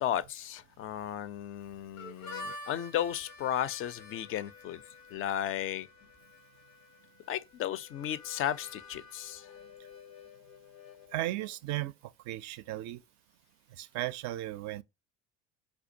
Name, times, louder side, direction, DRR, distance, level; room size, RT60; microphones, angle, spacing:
voice 1, 0.0-4.8 5.1-5.9 7.3-9.5, left 11 dB, 35° left, 0.4 m, -34 dB
Harmonica, 2.0-11.6, left 3 dB, 90° left, 0.7 m, -49 dB
voice 2, 11.1-13.0 13.8-14.8, right 15 dB, 45° right, 0.4 m, -36 dB
4.3 x 2.3 x 2.6 m
hypercardioid pair, 65°, 39 cm